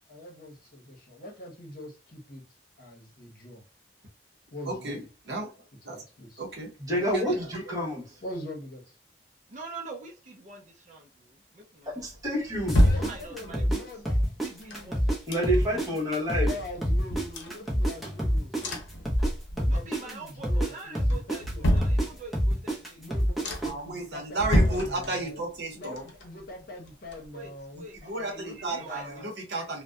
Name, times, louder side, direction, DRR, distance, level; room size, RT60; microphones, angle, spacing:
voice 1, 0.1-2.4 2.8-3.6 4.5-5.1 5.9-6.4 8.2-9.0 12.9-15.2 15.7-15.8 16.3-18.8 19.5-21.9 23.0-25.4 25.7-29.3, left 1 dB, 55° left, 0.9 m, -43 dB
voice 2, 4.7-5.5 5.8-6.0 6.4-7.5 23.6-26.0 27.7-29.8, right 2 dB, 65° right, 0.8 m, -34 dB
voice 3, 6.8-8.2 11.9-12.8 15.3-16.5, equal, 20° right, 1.1 m, -28 dB
voice 4, 9.5-11.1 11.5-12.0 12.8-13.9 14.4-15.4 19.6-23.0 27.3-27.5 27.8-27.9 28.2-28.4 28.7-29.0, right 3 dB, 45° right, 0.5 m, -44 dB
sound 1, 12.0-13.7 14.4-15.9 16.2-16.3 16.6-18.2 18.6-19.8 20.1-20.6 21.1-22.5 23.0-23.1 23.4-23.9 24.3-25.5 25.8-27.6 28.0-28.1, equal, 90° left, 0.7 m, -29 dB
sound 2, 12.7-15.2 15.4-19.3 19.6-23.7, equal, ahead, 0.6 m, -26 dB
2.6 x 2.1 x 2.2 m
head